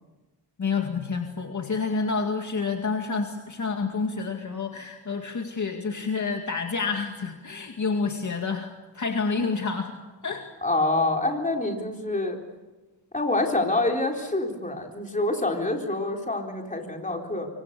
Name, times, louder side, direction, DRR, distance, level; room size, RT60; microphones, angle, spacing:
voice 1, 0.6-9.9 10.2-10.5, left 4 dB, 40° left, 3 dB, 2.2 m, -29 dB
voice 2, 10.6-12.4 13.1-17.5, left 2 dB, 20° left, 2 dB, 4.1 m, -26 dB
25.5 x 24.5 x 6.9 m, 1.2 s
wide cardioid pair, 110°, 43 cm